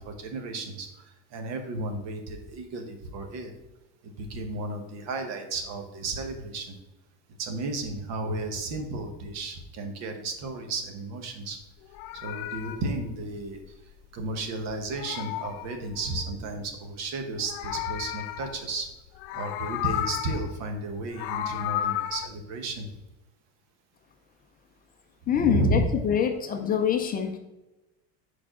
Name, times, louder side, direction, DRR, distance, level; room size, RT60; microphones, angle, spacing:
voice 1, 0.0-3.5 4.2-6.8 7.4-11.6 12.1-13.6 14.1-18.9 19.3-22.9 25.3-26.0, right 2 dB, 55° right, 5 dB, 1.2 m, -33 dB
Meow, 11.7-14.4 14.7-16.4 17.2-18.8 19.1-20.6 20.9-22.3, left 12 dB, 70° left, 0.6 m, -34 dB
voice 2, 25.3-27.4, left 8 dB, 25° left, 5 dB, 0.5 m, -25 dB
4.7 x 4.5 x 6.0 m, 1.0 s
cardioid pair, 150°, 33 cm